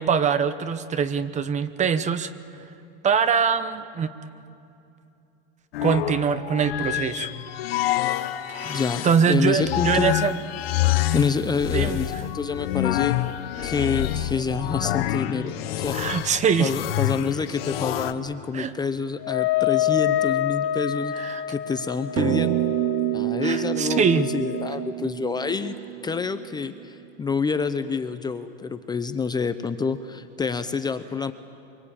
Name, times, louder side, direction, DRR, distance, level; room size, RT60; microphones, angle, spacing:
voice 1, 0.0-2.3 3.0-4.1 5.8-7.3 8.5-10.4 11.7-12.2 13.6-13.7 15.9-16.7 18.5-18.7 21.2-21.4 23.4-24.2, right 7 dB, 25° right, 13 dB, 0.8 m, -23 dB
sound 1, 5.7-18.1, left 14 dB, 90° left, 1.2 m, -27 dB
voice 2, 8.6-10.1 11.1-13.2 13.6-16.3 16.6-22.7 23.1-25.8 26.0-31.3, left 5 dB, 15° left, 10 dB, 0.7 m, -28 dB
Wind instrument woodwind instrument, 19.2-24.9, left 12 dB, 45° left, 0.8 m, -27 dB
sound 2, 22.2-26.8, right 21 dB, 60° right, 0.6 m, -28 dB
24.0 x 23.5 x 8.7 m, 2.8 s
supercardioid pair, 140°, 29 cm